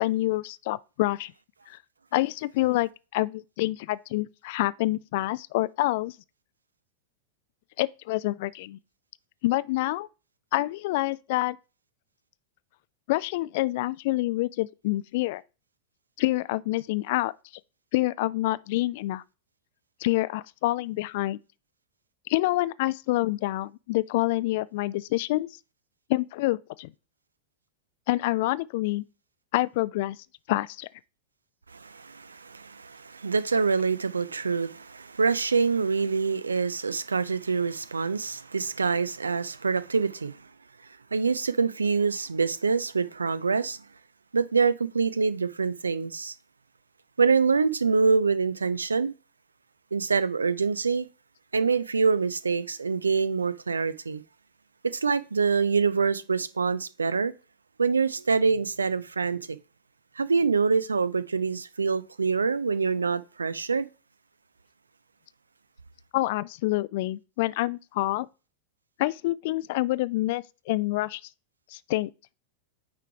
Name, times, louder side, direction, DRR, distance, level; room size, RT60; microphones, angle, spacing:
voice 1, 0.0-1.3 1.7-1.8 2.1-6.1 7.8-8.8 9.4-10.1 10.5-11.6 13.1-15.4 16.2-17.3 17.9-19.2 20.0-21.4 22.3-25.5 26.1-26.9 28.1-29.0 29.5-30.2 30.5-30.9 66.1-68.3 69.0-71.2 71.7-72.1, left 18 dB, 50° left, 0.3 m, -27 dB
voice 2, 31.7-40.4 41.1-43.8 44.3-46.3 47.2-49.1 49.9-51.1 51.5-54.2 54.8-57.3 57.8-59.6 60.2-63.9, right 5 dB, 75° right, 0.4 m, -25 dB
9.2 x 3.2 x 4.7 m
figure-of-eight pair, 90°, 0 cm